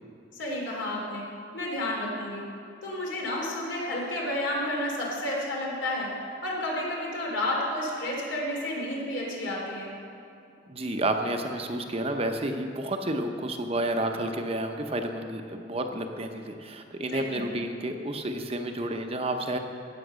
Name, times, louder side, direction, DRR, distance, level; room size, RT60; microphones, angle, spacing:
voice 1, 0.3-1.3 1.5-2.4 2.8-6.1 6.4-9.9 17.1-17.5, left 1 dB, 80° left, -2 dB, 3.1 m, -31 dB
voice 2, 10.7-19.6, right 1 dB, 30° right, 5 dB, 0.8 m, -30 dB
16.0 x 7.2 x 6.3 m, 2.5 s
head